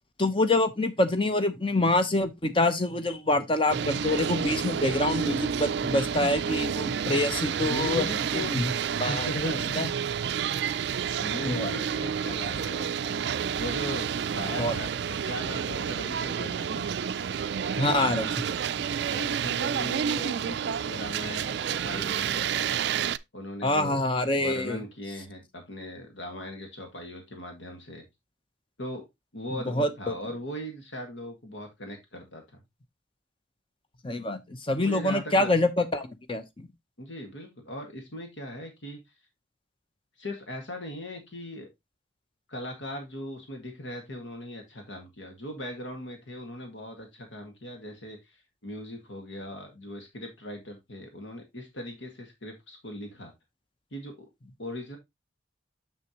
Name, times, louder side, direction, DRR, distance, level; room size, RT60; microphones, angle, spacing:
voice 1, 0.2-8.1 8.5-8.7 9.0-9.9 11.4-11.7 14.6-14.7 17.8-18.6 23.6-24.8 29.7-30.1 34.0-36.7, left 2 dB, 25° left, 0.8 m, -26 dB
sound 1, 3.7-23.2, right 7 dB, 60° right, 0.3 m, -30 dB
voice 2, 7.6-8.7 9.1-9.6 11.2-13.2 13.5-16.8 19.0-22.9 23.3-24.0 24.3-28.0 28.8-29.1 29.3-32.4 34.8-35.5 37.0-39.0 40.2-41.7 42.5-53.3 53.9-54.3 54.6-55.0, left 1 dB, 80° left, 1.8 m, -39 dB
6.8 x 6.6 x 2.9 m
head